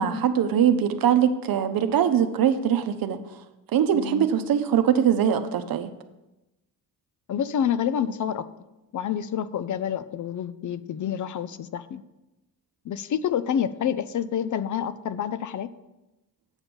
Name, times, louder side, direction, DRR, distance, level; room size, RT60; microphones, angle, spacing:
voice 1, 0.0-3.2 3.7-5.9, right 9 dB, 65° right, 9 dB, 0.8 m, -22 dB
voice 2, 3.9-4.3 7.3-8.4 8.9-12.0 12.8-15.7, left 9 dB, 55° left, 13 dB, 0.5 m, -28 dB
8.1 x 5.2 x 6.2 m, 0.97 s
cardioid pair, 110°, 37 cm